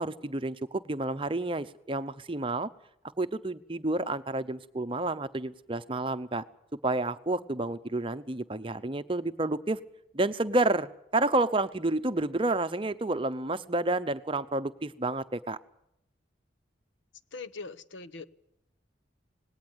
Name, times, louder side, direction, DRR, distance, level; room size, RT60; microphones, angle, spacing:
voice 1, 0.0-2.7 3.2-6.4 6.8-9.8 10.1-15.6, right 2 dB, 30° right, 12 dB, 0.8 m, -30 dB
voice 2, 17.3-18.3, left 4 dB, 85° left, 15 dB, 0.9 m, -41 dB
19.5 x 18.0 x 8.0 m, 0.79 s
head